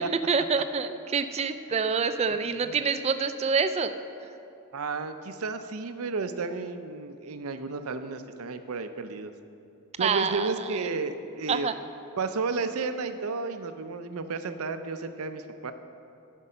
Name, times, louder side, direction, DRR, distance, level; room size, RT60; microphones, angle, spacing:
voice 1, 0.3-3.9 10.0-10.7 11.5-11.7, right 5 dB, 30° right, 10 dB, 0.4 m, -26 dB
voice 2, 4.7-9.3 10.0-11.7 12.2-15.7, right 4 dB, 80° right, 9 dB, 0.6 m, -32 dB
14.0 x 5.3 x 5.5 m, 2.6 s
head